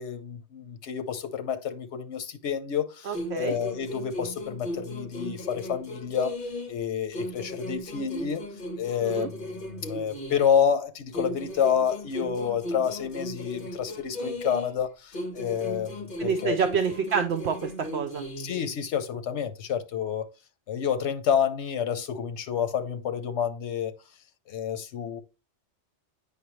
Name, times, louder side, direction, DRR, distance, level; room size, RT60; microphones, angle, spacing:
voice 1, 0.0-6.4 6.7-8.4 8.8-16.6 18.4-20.3 20.7-23.9 24.5-25.2, left 8 dB, 80° left, 1.1 m, -29 dB
voice 2, 3.0-3.5 9.0-9.3 16.2-18.2, right 6 dB, 70° right, 0.9 m, -27 dB
sound 1, 3.1-6.8 7.1-10.8 11.1-14.8 15.1-18.8, equal, 50° left, 1.5 m, -37 dB
8.4 x 5.4 x 3.1 m
omnidirectional pair, 1.2 m